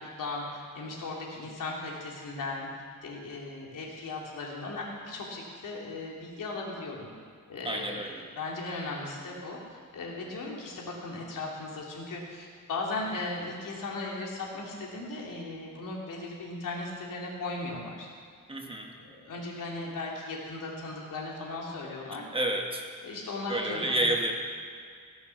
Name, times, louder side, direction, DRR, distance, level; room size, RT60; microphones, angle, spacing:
voice 1, 0.0-2.7 3.0-7.1 7.5-8.1 8.4-18.1 19.0-22.2 23.0-24.1, left 2 dB, 75° left, -2 dB, 3.0 m, -37 dB
voice 2, 7.6-8.2 18.5-19.0 22.3-22.8 23.5-24.3, right 1 dB, 15° right, 2 dB, 1.2 m, -29 dB
16.0 x 7.1 x 7.2 m, 2.1 s
wide cardioid pair, 155°, 32 cm